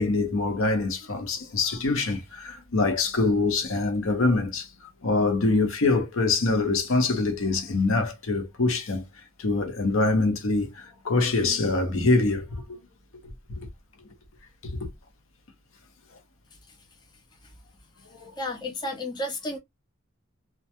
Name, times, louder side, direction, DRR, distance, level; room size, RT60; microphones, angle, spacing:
voice 1, 0.0-4.7 5.0-9.0 9.4-12.8 13.5-13.7 14.8-14.9 18.2-18.3, left 3 dB, 70° left, 0.7 m, -24 dB
voice 2, 18.4-19.6, left 1 dB, 20° left, 0.4 m, -32 dB
2.2 x 2.2 x 2.7 m
head